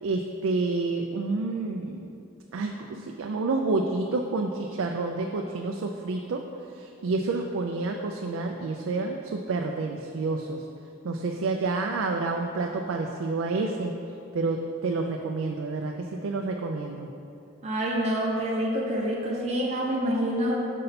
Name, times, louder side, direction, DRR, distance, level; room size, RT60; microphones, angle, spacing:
voice 1, 0.0-2.0 2.5-6.4 6.7-10.6 11.0-13.9 14.3-17.1, right 3 dB, 85° right, 2 dB, 0.4 m, -29 dB
voice 2, 17.6-20.6, equal, 30° right, -3 dB, 0.6 m, -27 dB
5.4 x 5.4 x 4.0 m, 2.6 s
head